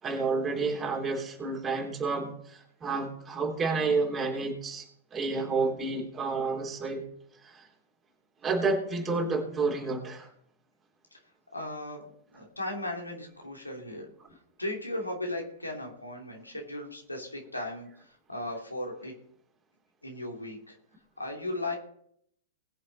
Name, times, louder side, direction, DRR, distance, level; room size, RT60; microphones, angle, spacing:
voice 1, 0.0-7.0 7.4-7.7 8.4-10.3, right 4 dB, 20° right, 1 dB, 3.4 m, -30 dB
voice 2, 11.5-12.0 12.3-19.1 20.0-20.8 21.2-21.8, left 1 dB, 90° left, 0 dB, 2.9 m, -37 dB
20.5 x 7.5 x 4.1 m, 0.68 s
figure-of-eight pair, 100°, 0 cm